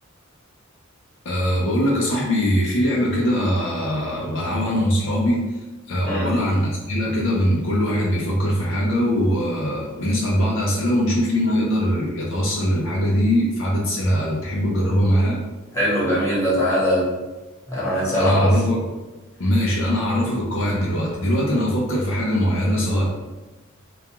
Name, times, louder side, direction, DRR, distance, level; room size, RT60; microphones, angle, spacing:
voice 1, 1.2-5.6 5.9-15.4 18.1-18.8 19.4-23.1, equal, 65° left, -3 dB, 0.5 m, -21 dB
voice 2, 15.7-17.1 17.7-18.5, equal, 15° left, -9 dB, 1.0 m, -21 dB
2.3 x 2.3 x 2.9 m, 1.1 s
head